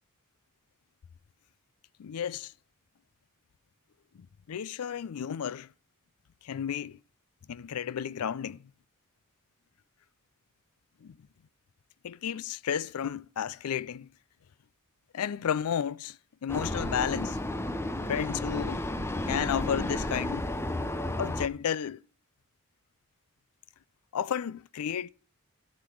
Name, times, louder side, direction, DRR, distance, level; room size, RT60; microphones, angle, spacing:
voice 1, 2.0-2.5 4.1-5.7 6.4-7.0 7.5-8.7 11.0-11.2 12.0-14.1 15.1-16.2 16.4-17.4 18.1-18.8 19.3-20.5 21.2-22.0 24.1-25.1, left 8 dB, 80° left, 0.4 m, -32 dB
Vehicle, 16.5-21.5, left 1 dB, 10° left, 0.6 m, -32 dB
14.5 x 6.7 x 4.5 m
head